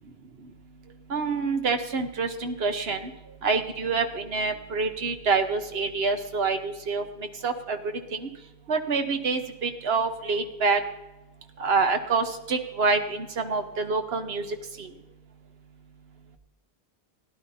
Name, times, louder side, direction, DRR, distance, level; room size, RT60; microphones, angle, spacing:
voice 1, 1.1-3.1 3.4-8.3 8.7-10.8 11.6-14.4 14.8-14.9, right 4 dB, 65° right, 7 dB, 1.2 m, -27 dB
16.5 x 11.0 x 2.8 m, 1.0 s
omnidirectional pair, 1.1 m